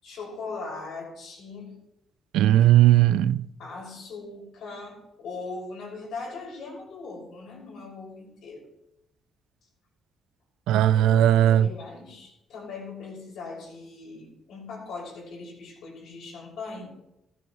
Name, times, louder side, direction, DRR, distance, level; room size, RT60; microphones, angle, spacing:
voice 1, 0.0-1.8 3.6-8.6 10.9-16.9, left 3 dB, 80° left, 6.0 m, -40 dB
voice 2, 2.3-3.5 10.7-11.7, right 12 dB, 90° right, 0.4 m, -18 dB
15.0 x 13.0 x 3.2 m
cardioid pair, 90°, 0 cm